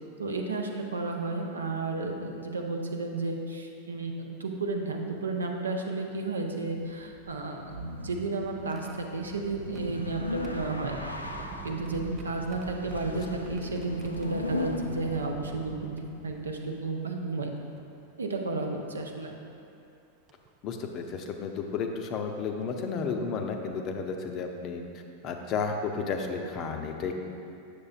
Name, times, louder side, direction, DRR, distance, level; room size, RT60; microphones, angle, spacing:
voice 1, 0.2-8.9 9.1-11.0 11.6-17.5 18.2-19.3, right 3 dB, 75° right, 2 dB, 0.6 m, -32 dB
sound 1, 6.5-16.1, left 2 dB, 85° left, 0.4 m, -39 dB
sound 2, 7.6-16.9 17.8-17.9 19.3-19.5 20.3-20.5 22.1-22.2 22.6-22.8, right 3 dB, 25° right, 0.4 m, -46 dB
voice 2, 20.6-24.8 25.2-27.1, left 5 dB, 35° left, 4 dB, 0.6 m, -32 dB
8.4 x 6.6 x 2.4 m, 2.5 s
figure-of-eight pair, 90°, 0 cm